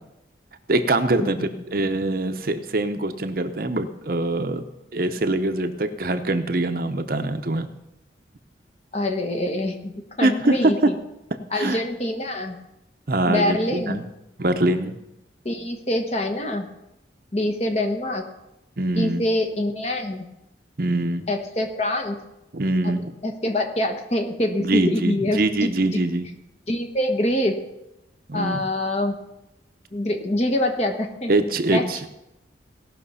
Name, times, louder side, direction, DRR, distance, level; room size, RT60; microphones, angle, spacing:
voice 1, 0.7-4.6 4.9-7.7 10.2-11.0 11.5-11.8 13.1-14.0 14.4-15.0 18.8-19.2 20.8-21.3 22.5-23.1 24.6-26.3 28.3-28.6 31.3-32.1, right 2 dB, 50° right, 8 dB, 0.8 m, -23 dB
voice 2, 8.9-10.9 11.5-12.6 13.3-14.0 15.4-16.7 17.3-18.2 18.9-20.3 21.3-22.2 22.8-26.0 26.7-27.6 28.3-29.1 29.9-31.3 31.7-31.8, left 1 dB, 35° left, 5 dB, 1.3 m, -25 dB
17.0 x 6.1 x 5.6 m, 0.92 s
head